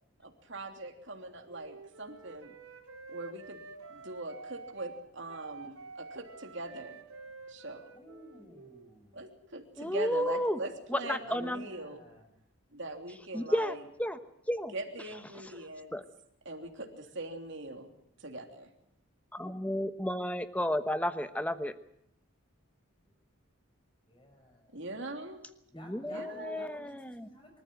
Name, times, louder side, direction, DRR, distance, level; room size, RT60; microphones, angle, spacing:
voice 1, 0.2-2.5 3.1-3.6 3.9-7.0 7.5-7.9 9.1-12.0 12.7-13.8 14.7-15.9 16.4-17.9 18.2-18.7 24.7-25.4 26.1-26.7, right 2 dB, 55° right, 4 dB, 3.3 m, -42 dB
Wind instrument woodwind instrument, 1.5-8.9, right 4 dB, 85° right, 4.3 m, -49 dB
voice 2, 7.9-9.2 11.2-12.3 24.1-24.8 25.7-27.6, left 1 dB, 25° left, 4 dB, 6.4 m, -54 dB
voice 3, 9.8-10.6 10.9-11.7 13.3-14.2 14.5-14.7 15.9-16.0 19.3-21.7 25.7-27.3, equal, 5° left, 10 dB, 1.1 m, -32 dB
25.0 x 14.5 x 9.0 m, 0.78 s
head